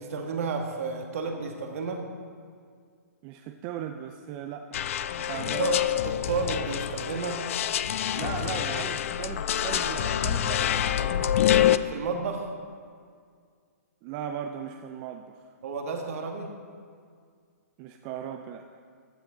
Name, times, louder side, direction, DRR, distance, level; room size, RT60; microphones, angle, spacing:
voice 1, 0.0-2.0 5.3-5.8 6.0-7.4 11.9-12.5 15.6-16.5, right 4 dB, 60° right, 3 dB, 1.5 m, -31 dB
voice 2, 3.2-4.8 5.2-5.6 8.1-11.5 14.0-15.5 17.8-18.7, right 9 dB, 30° right, 6 dB, 0.4 m, -38 dB
sound 1, 4.7-11.8, left 11 dB, 55° left, 0.4 m, -26 dB
14.5 x 7.1 x 3.9 m, 2.1 s
hypercardioid pair, 130°, 9 cm